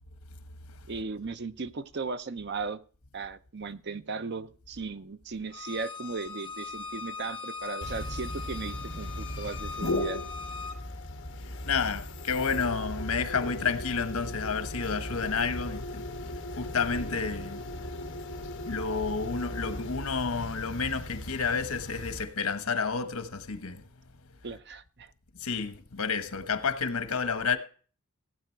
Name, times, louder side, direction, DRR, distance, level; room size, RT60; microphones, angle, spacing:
voice 1, 0.9-2.8 3.1-10.2 24.4-25.1, right 4 dB, 50° right, 0.7 m, -37 dB
Bowed string instrument, 5.5-10.8, left 5 dB, 25° left, 1.3 m, -40 dB
sound 1, 7.8-22.2, left 1 dB, 60° left, 1.3 m, -37 dB
voice 2, 11.6-16.1 16.5-17.6 18.7-23.8 25.4-27.6, left 5 dB, 85° left, 1.2 m, -30 dB
16.0 x 8.5 x 4.5 m
head